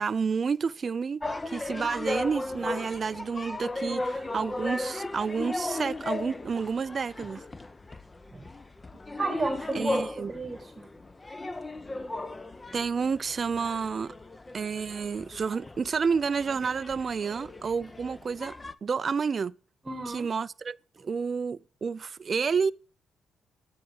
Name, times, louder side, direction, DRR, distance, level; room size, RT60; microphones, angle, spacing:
voice 1, 0.0-7.4 9.7-10.3 12.7-14.1 14.5-18.5 18.8-19.5 20.1-22.7, right 5 dB, 40° right, 0.3 m, -30 dB
sound 1, 1.2-18.7, left 2 dB, 20° left, 0.6 m, -36 dB
voice 2, 9.2-10.9 19.8-20.3, right 3 dB, 25° right, 1.2 m, -33 dB
10.5 x 3.9 x 6.9 m
cardioid pair, 90°, 0 cm